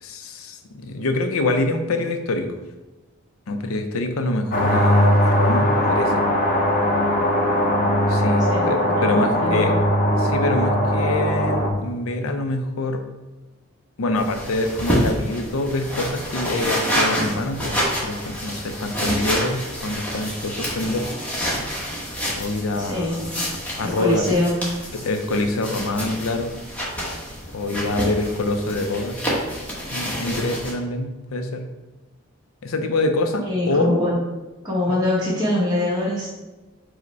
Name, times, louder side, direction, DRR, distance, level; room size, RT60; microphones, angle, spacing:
voice 1, 0.0-2.5 3.5-6.2 8.1-9.7 10.2-13.0 14.0-21.1 22.4-24.2 24.9-26.5 27.5-29.2 29.9-31.6 32.6-34.0 34.9-35.0, left 2 dB, 80° left, 6 dB, 0.5 m, -25 dB
sound 1, 4.5-11.7, equal, 40° left, 0.6 m, -19 dB
voice 2, 8.4-9.8 22.8-23.3 23.8-24.6 33.4-34.2 34.6-36.4, left 1 dB, 20° right, -7 dB, 1.0 m, -24 dB
sound 2, 14.1-30.7, equal, 5° left, 0.9 m, -28 dB
4.8 x 2.1 x 4.5 m, 1.1 s
head